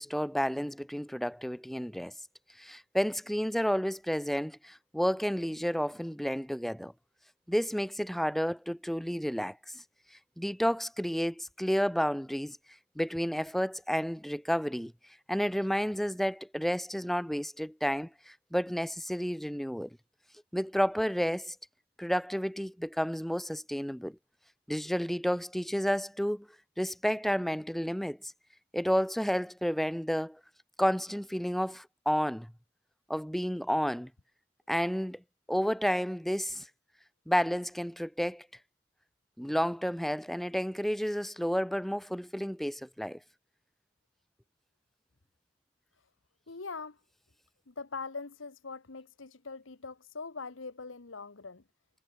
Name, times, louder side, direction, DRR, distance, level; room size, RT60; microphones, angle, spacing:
voice 1, 0.0-2.1 2.6-6.9 7.5-9.8 10.4-12.6 13.0-14.9 15.3-19.9 20.5-21.6 22.0-24.2 24.7-26.5 26.8-28.3 28.7-30.4 30.8-32.5 33.1-34.1 34.7-35.2 35.5-36.7 37.3-38.5 39.4-43.2, equal, ahead, 0.5 m, -31 dB
voice 2, 46.5-47.0 47.7-51.6, left 4 dB, 75° left, 1.2 m, -42 dB
head